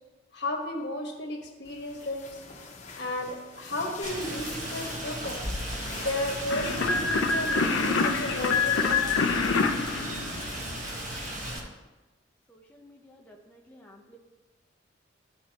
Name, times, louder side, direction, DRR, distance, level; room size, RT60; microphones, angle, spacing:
voice 1, 0.3-2.4 2.9-5.4 5.9-9.2 10.3-10.4, left 1 dB, 60° left, 1 dB, 1.3 m, -34 dB
sound 1, 1.6-9.8, left 2 dB, 40° left, 0.9 m, -43 dB
Rain, 4.0-11.6, right 1 dB, 45° right, 1.3 m, -36 dB
sound 2, 6.5-11.0, left 4 dB, 85° left, 0.6 m, -26 dB
voice 2, 12.5-14.2, equal, 10° left, -1 dB, 0.6 m, -53 dB
13.0 x 4.4 x 2.9 m, 1.2 s
head